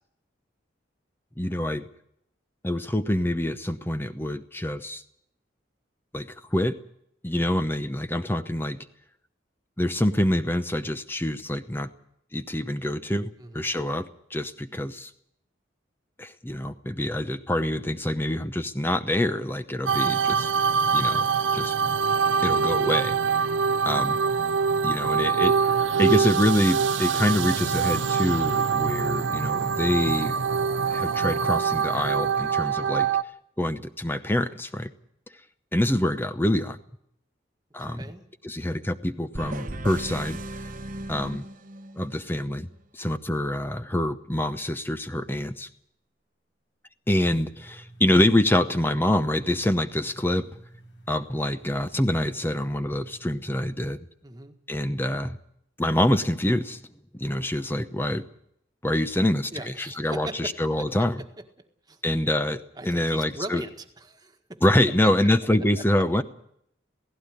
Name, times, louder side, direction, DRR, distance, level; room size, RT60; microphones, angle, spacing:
voice 1, 1.4-1.8 2.6-5.0 6.1-6.8 7.2-8.8 9.8-11.9 12.3-15.1 16.2-20.5 20.9-21.3 21.5-22.0 22.4-23.5 23.8-24.2 24.8-25.5 26.0-30.3 30.9-33.1 33.6-34.9 35.7-36.8 37.7-38.1 38.4-40.4 41.1-41.5 42.0-42.7 42.9-45.7 47.1-50.5 51.1-54.1 54.7-55.4 55.8-56.8 57.1-58.3 58.8-61.2 62.0-63.6 64.6-66.2, left 1 dB, 10° left, 11 dB, 0.8 m, -26 dB
voice 2, 7.3-7.6 13.4-13.7 19.9-20.1 37.8-38.3 54.2-54.6 59.5-61.3 61.9-62.0 62.7-64.6 65.0-65.1 65.8-66.0, right 2 dB, 20° right, 6 dB, 1.7 m, -40 dB
sound 1, 19.9-33.2, right 6 dB, 80° right, 0.7 m, -24 dB
sound 2, 39.3-42.1, right 1 dB, 45° right, 1.1 m, -36 dB
sound 3, 47.4-53.5, right 1 dB, 90° left, 5.2 m, -51 dB
17.0 x 16.0 x 9.9 m, 0.73 s
head